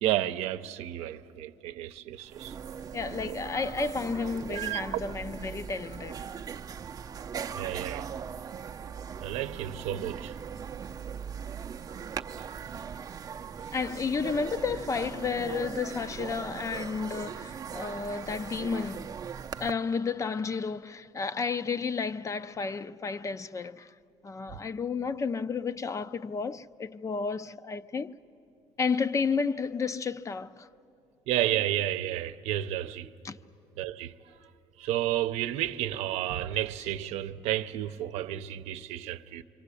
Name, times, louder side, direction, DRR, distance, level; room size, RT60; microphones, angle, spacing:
voice 1, 0.0-2.5 3.3-3.4 4.5-4.8 7.5-8.1 9.2-10.3 31.3-33.1 33.8-34.1 34.8-39.4, right 13 dB, 85° right, 0.7 m, -31 dB
sound 1, 2.0-2.1 2.2-19.7, right 7 dB, 35° right, 0.5 m, -39 dB
voice 2, 2.9-6.2 13.7-19.2 19.6-23.9 24.2-28.2 28.8-30.7 33.2-33.4 39.0-39.1, left 5 dB, 30° left, 0.5 m, -32 dB
26.5 x 24.5 x 8.3 m
cardioid pair, 110°, 11 cm